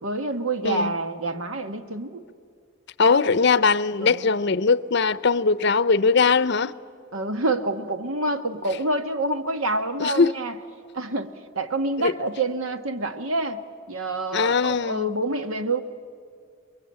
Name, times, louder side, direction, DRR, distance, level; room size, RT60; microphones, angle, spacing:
voice 1, 0.0-2.2 4.0-4.3 7.1-10.6 10.9-13.6 13.9-15.8, right 2 dB, 80° right, 1.4 m, -27 dB
voice 2, 3.0-6.7 10.0-10.3 12.0-12.1 14.3-15.1, left 4 dB, 55° left, 0.6 m, -20 dB
28.0 x 22.0 x 8.8 m
head